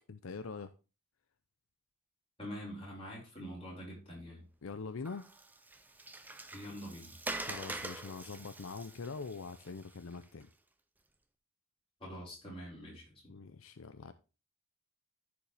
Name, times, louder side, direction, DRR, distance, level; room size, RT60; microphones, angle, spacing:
voice 1, 0.1-0.7 4.6-5.3 7.3-10.5 13.3-14.1, left 4 dB, 75° left, 0.6 m, -43 dB
voice 2, 2.4-4.4 6.5-7.1 12.0-13.3, equal, 25° left, 4.9 m, -45 dB
Water, 5.0-10.4, right 2 dB, 10° right, 0.6 m, -45 dB
14.0 x 4.9 x 3.4 m
head